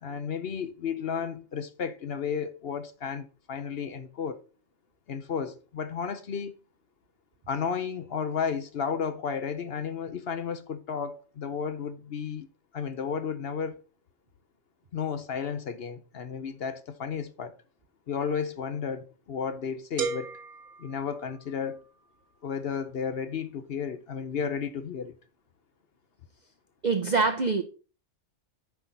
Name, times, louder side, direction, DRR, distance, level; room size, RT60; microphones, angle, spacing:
voice 1, 0.0-4.4 5.1-6.5 7.5-12.5 12.7-13.8 14.9-17.6 18.1-20.3 20.8-21.8 22.4-25.1, left 6 dB, 55° left, 0.8 m, -33 dB
sound 1, 20.0-21.9, right 6 dB, 85° right, 1.4 m, -36 dB
voice 2, 26.8-27.6, right 4 dB, 40° right, 0.7 m, -24 dB
10.0 x 5.8 x 4.0 m
omnidirectional pair, 1.5 m